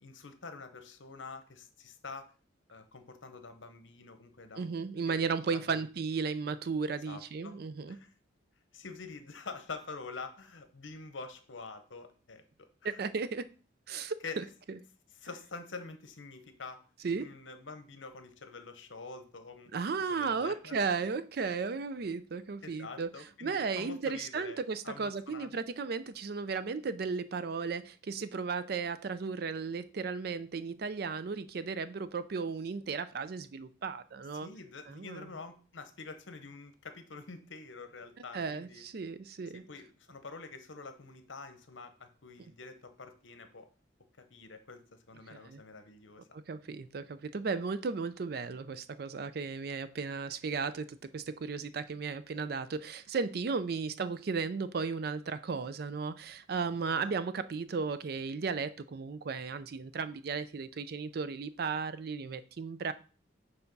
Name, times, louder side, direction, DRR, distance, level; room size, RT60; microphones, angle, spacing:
voice 1, 0.0-2.3 2.7-4.7 5.0-5.2 5.5-5.8 7.1-7.5 7.9-8.1 8.7-12.4 12.8-13.1 14.2-14.5 15.2-16.8 17.2-19.7 20.1-20.8 22.6-25.6 34.3-38.8 39.5-43.7 44.2-46.3 56.9-57.1, left 4 dB, 75° left, 8 dB, 0.9 m, -46 dB
voice 2, 4.5-8.0 12.8-13.5 13.9-14.8 17.0-17.3 19.7-23.1 23.4-34.5 34.9-35.2 38.3-39.6 45.3-45.6 46.3-62.9, right 5 dB, 50° right, 14 dB, 0.4 m, -35 dB
7.0 x 3.4 x 5.3 m, 0.39 s
head